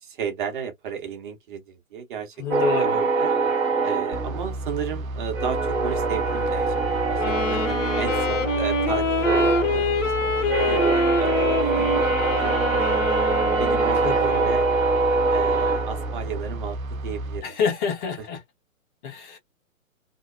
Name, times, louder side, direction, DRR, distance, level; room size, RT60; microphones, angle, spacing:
voice 1, 0.0-3.3 3.8-13.0 13.6-14.7 15.3-17.5 18.2-18.3, right 7 dB, 35° right, 0.8 m, -33 dB
voice 2, 2.4-2.9 14.0-14.5 17.4-18.4 19.0-19.4, left 6 dB, 35° left, 1.2 m, -27 dB
sound 1, 2.5-5.0 5.3-16.5, right 3 dB, 5° right, 0.6 m, -24 dB
sound 2, 4.1-17.4, right 1 dB, 80° right, 0.6 m, -32 dB
Wind instrument woodwind instrument, 7.2-14.0, left 2 dB, 60° left, 1.0 m, -25 dB
2.9 x 2.1 x 2.5 m
figure-of-eight pair, 125°, 41 cm